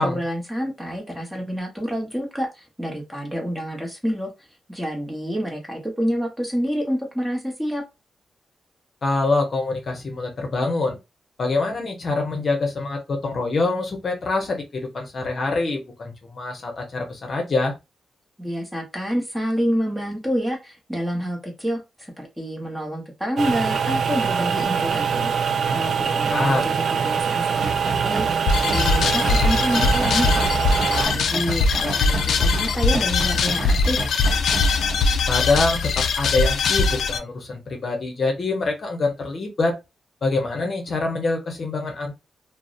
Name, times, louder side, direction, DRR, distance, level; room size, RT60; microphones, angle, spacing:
voice 1, 0.0-4.3 4.7-7.8 18.4-30.4 30.7-34.1, equal, 5° right, 0.8 m, -28 dB
voice 2, 9.0-11.0 11.4-17.7 26.3-26.6 35.3-39.8 40.2-42.2, left 3 dB, 50° left, 0.7 m, -25 dB
sound 1, 23.4-31.1, right 6 dB, 65° right, 0.3 m, -23 dB
sound 2, 27.5-35.1, right 2 dB, 40° right, 0.9 m, -32 dB
sound 3, 28.5-37.2, left 4 dB, 80° left, 0.3 m, -21 dB
2.7 x 2.0 x 2.3 m
cardioid pair, 110°, 0 cm